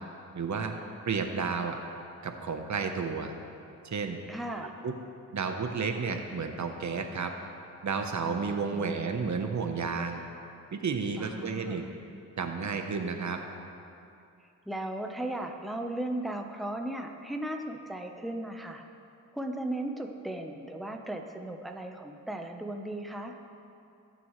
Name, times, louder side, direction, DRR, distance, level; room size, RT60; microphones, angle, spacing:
voice 1, 0.3-0.7 1.1-1.8 2.2-3.3 3.8-4.2 4.6-4.9 5.3-7.3 7.8-10.2 10.7-11.8 12.4-13.4, right 5 dB, 55° right, 5 dB, 1.0 m, -32 dB
voice 2, 4.3-4.7 8.7-9.2 11.2-11.9 14.7-18.8 19.3-23.4, right 1 dB, ahead, 3 dB, 0.9 m, -36 dB
20.0 x 7.0 x 3.2 m, 2.6 s
cardioid pair, 65°, 35 cm